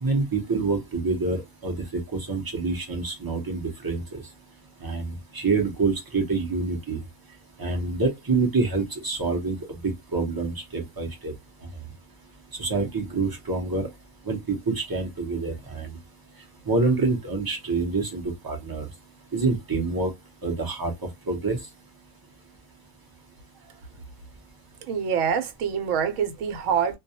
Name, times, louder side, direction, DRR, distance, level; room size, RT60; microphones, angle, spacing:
voice 1, 0.0-4.2 4.8-7.0 7.6-9.6 10.1-11.3 12.6-13.9 14.3-15.9 16.7-18.9 19.3-20.1 20.4-21.6, right 3 dB, 25° right, 0.5 m, -26 dB
voice 2, 24.8-27.0, right 7 dB, 70° right, 1.0 m, -25 dB
2.3 x 2.2 x 2.7 m
omnidirectional pair, 1.4 m